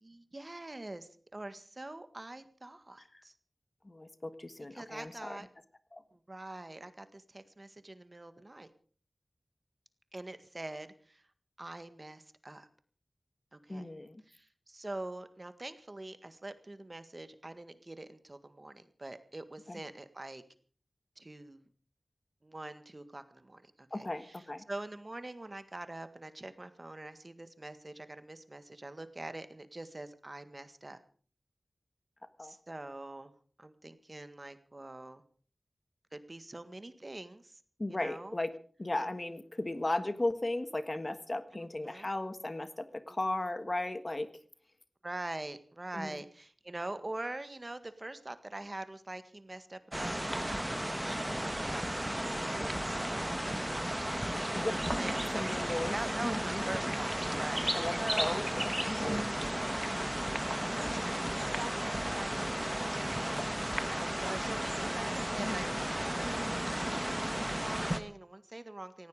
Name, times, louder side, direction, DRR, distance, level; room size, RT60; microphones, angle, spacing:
voice 1, 0.0-3.3 4.7-5.5 6.1-8.7 10.1-11.2 11.6-12.7 13.5-13.9 14.3-20.4 21.2-21.7 22.4-31.0 32.4-33.3 33.6-35.2 36.1-37.6 37.9-38.4 41.5-42.1 43.1-43.2 45.0-58.4 60.7-62.3 62.7-63.3 63.8-69.1, right 2 dB, 40° right, 11 dB, 1.8 m, -44 dB
voice 2, 3.8-5.4 5.9-6.0 13.7-14.2 19.7-19.8 23.9-24.6 32.4-32.5 37.8-38.5 38.8-44.3 45.9-46.2 52.0-52.2 54.5-54.7 55.3-56.0 56.2-56.6 57.7-59.2 65.4-65.8, left 2 dB, 35° left, 12 dB, 1.5 m, -36 dB
sound 1, 49.9-68.0, right 1 dB, 10° right, 1.5 m, -34 dB
17.5 x 16.0 x 5.0 m, 0.44 s
wide cardioid pair, 50°, 0 cm